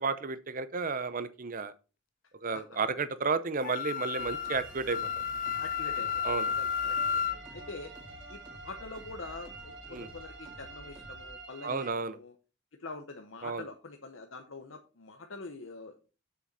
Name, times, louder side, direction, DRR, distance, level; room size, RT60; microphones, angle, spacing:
voice 1, 0.0-1.7 2.4-5.1 6.2-6.5 9.9-10.1 11.6-12.2 13.4-13.6, right 4 dB, 40° right, 0.6 m, -32 dB
Wind instrument woodwind instrument, 3.6-7.4, left 7 dB, 40° left, 0.3 m, -32 dB
sound 1, 4.0-11.9, right 4 dB, 55° right, 2.1 m, -48 dB
sound 2, 4.2-11.3, equal, 25° right, 2.2 m, -52 dB
voice 2, 5.5-7.9 8.3-12.4 12.8-16.1, left 3 dB, 60° left, 0.8 m, -45 dB
7.6 x 6.8 x 4.1 m
head